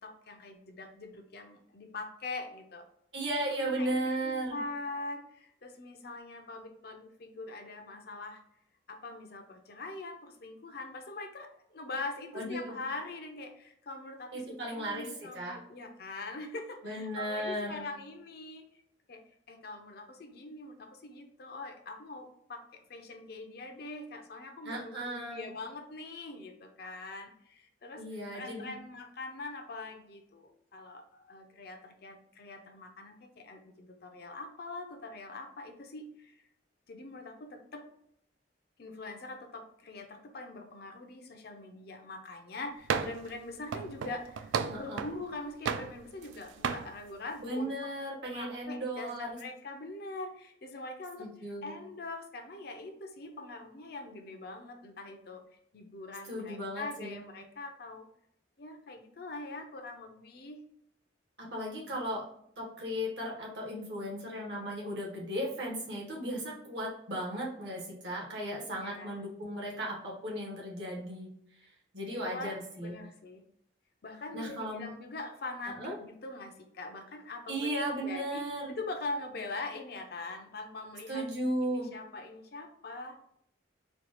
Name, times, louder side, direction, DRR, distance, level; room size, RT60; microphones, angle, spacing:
voice 1, 0.0-2.8 3.5-3.9 4.2-8.4 8.9-18.6 19.1-19.2 19.5-28.0 28.3-36.4 36.9-37.9 38.8-47.9 48.3-55.4 55.7-58.1 58.6-60.6 68.7-69.2 72.2-72.6 72.8-73.4 74.0-81.3 81.6-83.2, left 2 dB, 55° left, 5 dB, 0.5 m, -43 dB
voice 2, 3.1-4.6 12.3-12.8 14.3-15.6 16.8-17.9 24.6-25.4 28.0-28.8 44.7-45.0 47.4-49.4 51.2-51.7 56.3-57.2 61.4-62.2 62.6-71.3 71.9-72.9 74.3-74.9 75.8-75.9 77.5-78.7 81.1-81.9, right 1 dB, 65° right, -2 dB, 1.4 m, -36 dB
sound 1, 42.9-43.3 43.7-45.2 45.6-46.3 46.6-46.9, right 6 dB, 85° right, 0.3 m, -33 dB
4.2 x 2.3 x 3.1 m, 0.71 s
head